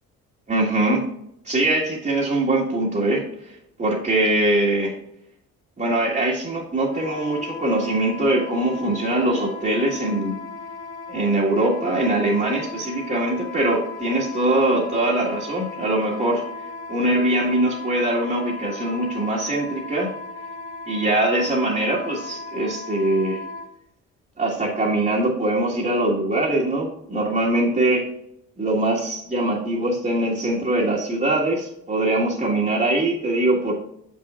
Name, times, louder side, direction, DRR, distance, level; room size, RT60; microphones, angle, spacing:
voice 1, 0.5-1.0 1.4-4.9 5.8-10.4 11.1-16.4 16.9-20.1 20.9-23.4 24.4-28.1 28.6-33.7, right 1 dB, 30° right, -5 dB, 1.8 m, -22 dB
Wind instrument woodwind instrument, 6.9-23.7, left 3 dB, 85° left, 2.6 m, -36 dB
6.7 x 6.5 x 2.5 m, 0.77 s
cardioid pair, 90°, 30 cm